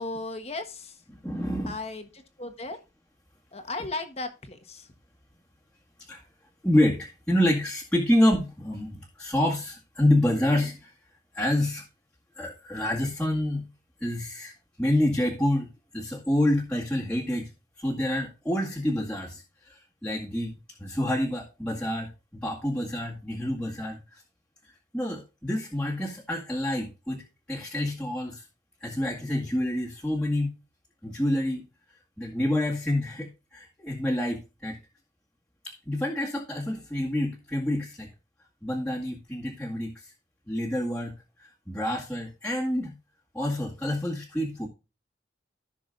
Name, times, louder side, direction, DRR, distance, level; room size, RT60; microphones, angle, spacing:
voice 1, 0.0-1.2 1.7-2.1 2.4-2.8 3.5-4.9, left 2 dB, 35° left, 7 dB, 1.4 m, -36 dB
voice 2, 1.2-1.7 6.1-6.2 6.6-10.9 11.3-11.8 12.4-13.7 14.0-14.5 14.8-17.5 17.8-24.2 24.9-27.2 27.5-28.4 28.8-30.5 31.0-31.6 32.2-34.8 35.6-38.1 38.6-40.1 40.5-42.9 43.3-44.7, left 1 dB, 5° left, -6 dB, 2.0 m, -27 dB
15.0 x 6.3 x 2.5 m, 0.28 s
head